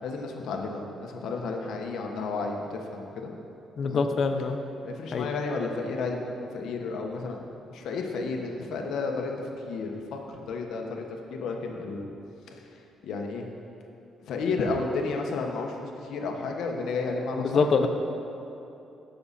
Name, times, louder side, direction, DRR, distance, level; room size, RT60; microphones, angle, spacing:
voice 1, 0.0-3.3 3.8-4.1 4.8-11.0 11.3-12.1 12.5-13.4 14.3-17.9, left 3 dB, 70° left, 2 dB, 1.3 m, -32 dB
voice 2, 3.8-4.6 5.1-5.3 17.4-17.9, left 4 dB, 45° left, 6 dB, 0.7 m, -24 dB
16.5 x 6.7 x 4.2 m, 2.8 s
cardioid pair, 160°, 0 cm